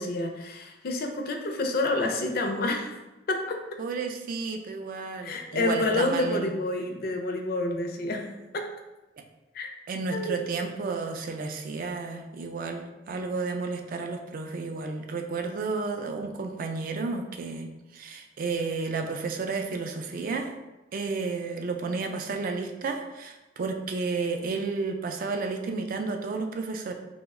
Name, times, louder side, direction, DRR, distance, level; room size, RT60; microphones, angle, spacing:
voice 1, 0.0-3.0 3.3-3.6 5.2-8.7 9.5-9.7 10.1-10.4, left 2 dB, 55° left, 4 dB, 0.4 m, -29 dB
voice 2, 3.8-6.5 9.9-17.7 17.9-20.5 20.9-26.9, right 4 dB, 50° right, 5 dB, 0.3 m, -32 dB
2.8 x 2.1 x 3.5 m, 1.0 s
head